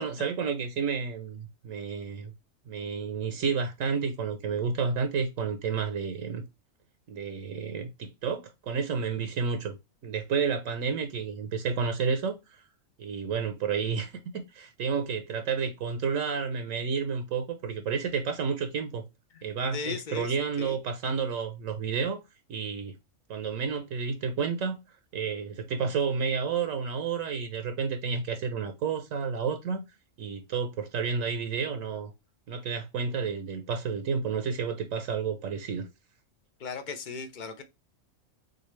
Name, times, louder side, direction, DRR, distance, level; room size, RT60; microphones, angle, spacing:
voice 1, 0.0-2.3 2.7-6.4 7.1-9.8 10.0-12.6 13.0-19.0 19.4-22.2 22.5-22.9 23.3-24.8 25.1-29.8 30.2-32.1 32.5-35.9, right 5 dB, 75° right, 1.1 m, -31 dB
voice 2, 19.7-20.8 36.6-37.6, left 4 dB, 45° left, 0.7 m, -37 dB
6.6 x 2.4 x 3.1 m
omnidirectional pair, 1.4 m